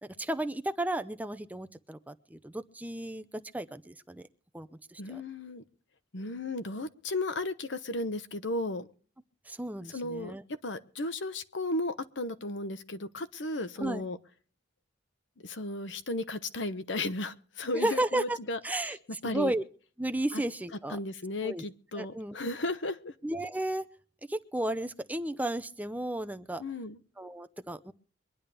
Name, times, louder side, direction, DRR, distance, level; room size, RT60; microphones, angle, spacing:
voice 1, 0.0-4.2 4.5-5.2 9.5-10.4 13.8-14.0 17.7-18.4 18.6-19.0 19.2-19.6 20.0-21.0 21.4-21.6 22.0-22.4 23.2-23.9 24.3-26.6 27.2-27.9, right 1 dB, 10° right, 10 dB, 0.6 m, -33 dB
voice 2, 5.0-5.6 6.1-8.8 9.9-10.3 10.6-14.2 15.4-19.0 19.2-19.5 20.3-20.4 20.9-23.1 26.6-27.0, left 2 dB, 75° left, 11 dB, 1.0 m, -35 dB
23.5 x 10.5 x 3.4 m, 0.42 s
head